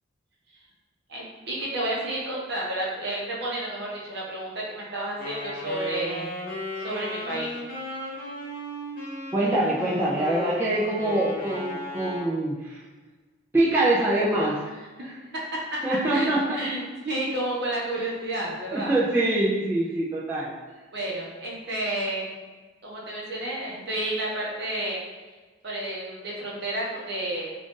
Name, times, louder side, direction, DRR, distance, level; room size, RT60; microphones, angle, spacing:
voice 1, 1.1-6.3 6.8-7.5 15.1-15.8 16.1-18.9 20.9-22.3 22.8-25.0 25.6-27.5, right 1 dB, 55° right, -5 dB, 0.8 m, -31 dB
Wind instrument woodwind instrument, 5.2-12.3, left 1 dB, 50° left, 1.0 m, -35 dB
voice 2, 9.3-12.8 13.5-14.6 15.0-15.1 15.8-16.6 18.7-20.5, right 1 dB, 10° right, -8 dB, 0.4 m, -24 dB
2.5 x 2.4 x 3.6 m, 1.3 s
head